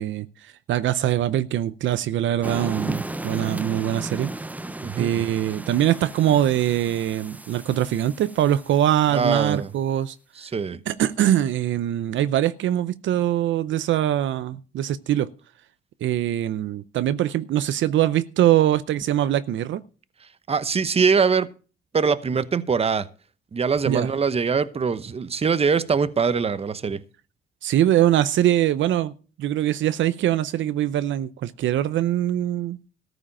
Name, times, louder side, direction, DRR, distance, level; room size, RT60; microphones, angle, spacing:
voice 1, 0.0-4.3 5.0-10.2 10.9-15.3 16.0-19.8 23.9-24.1 27.6-29.1 29.4-32.8, right 12 dB, 70° right, 0.6 m, -22 dB
sound 1, 2.4-9.1, right 2 dB, 10° right, 0.5 m, -35 dB
voice 2, 4.8-5.2 9.1-9.7 10.4-10.8 20.5-21.5 21.9-23.1 23.5-27.0, right 5 dB, 30° right, 0.9 m, -23 dB
14.0 x 5.0 x 8.8 m
cardioid pair, 90°, 20 cm